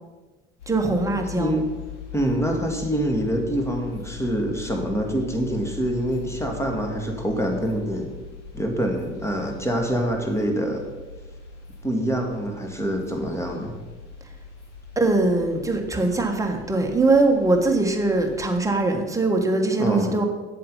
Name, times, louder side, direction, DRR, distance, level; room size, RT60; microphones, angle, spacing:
sound 1, 0.6-18.6, left 5 dB, 70° left, 2.5 m, -41 dB
voice 1, 0.7-1.5 15.0-20.3, right 2 dB, 10° right, 2 dB, 1.5 m, -21 dB
voice 2, 1.3-1.7 2.1-8.1 8.5-10.8 11.8-13.7 19.8-20.1, right 1 dB, 5° left, 3 dB, 1.8 m, -25 dB
7.9 x 7.5 x 5.5 m, 1.2 s
figure-of-eight pair, 70°, 36 cm